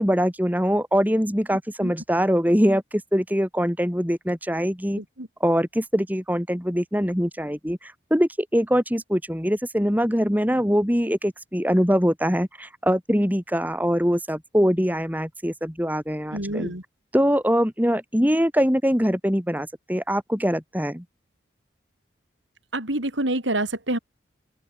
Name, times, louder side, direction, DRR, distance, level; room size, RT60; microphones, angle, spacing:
voice 1, 0.0-5.0 5.4-16.7 17.1-21.0, equal, 10° right, 7.0 m, -23 dB
voice 2, 16.3-16.8 22.7-24.0, right 1 dB, 85° right, 4.9 m, -27 dB
open air
head